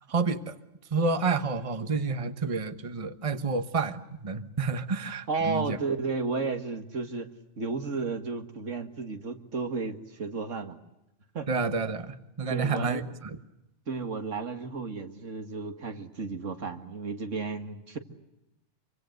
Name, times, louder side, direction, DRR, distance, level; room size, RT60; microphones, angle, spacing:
voice 1, 0.1-0.6 0.9-5.8 11.5-13.0, right 4 dB, 30° right, 10 dB, 1.2 m, -29 dB
voice 2, 5.3-7.3 7.6-10.8 11.3-11.8 12.5-13.3 13.9-18.0, right 4 dB, 80° right, 6 dB, 2.3 m, -33 dB
27.0 x 25.0 x 7.9 m, 0.89 s
omnidirectional pair, 1.3 m